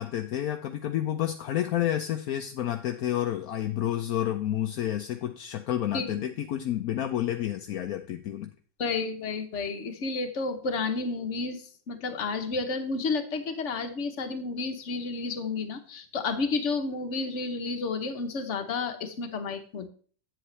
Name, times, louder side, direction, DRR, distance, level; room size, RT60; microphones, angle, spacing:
voice 1, 0.0-8.5, left 12 dB, 70° left, 6 dB, 0.9 m, -30 dB
voice 2, 8.8-19.9, left 4 dB, 45° left, 7 dB, 1.1 m, -31 dB
8.8 x 7.8 x 3.2 m, 0.43 s
omnidirectional pair, 2.0 m